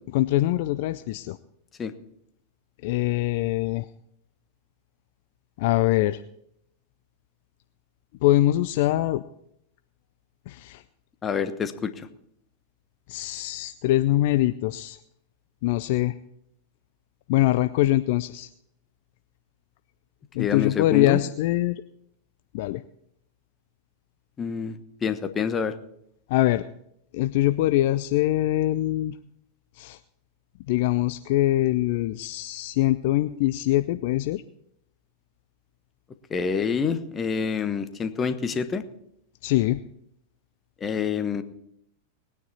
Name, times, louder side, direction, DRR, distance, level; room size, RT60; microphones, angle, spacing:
voice 1, 0.1-1.4 2.8-3.9 5.6-6.2 8.2-9.2 10.5-10.8 13.1-15.0 15.6-16.1 17.3-18.5 20.3-21.8 22.5-22.8 26.3-26.6 27.1-29.2 29.8-30.0 30.7-34.4 39.4-39.8, left 15 dB, 50° left, 12 dB, 0.4 m, -23 dB
voice 2, 11.2-12.1 20.4-21.2 24.4-24.7 25.0-25.7 36.3-38.8 40.8-41.4, left 6 dB, 20° left, 11 dB, 1.1 m, -27 dB
19.5 x 9.5 x 4.2 m, 0.74 s
figure-of-eight pair, 90°, 0 cm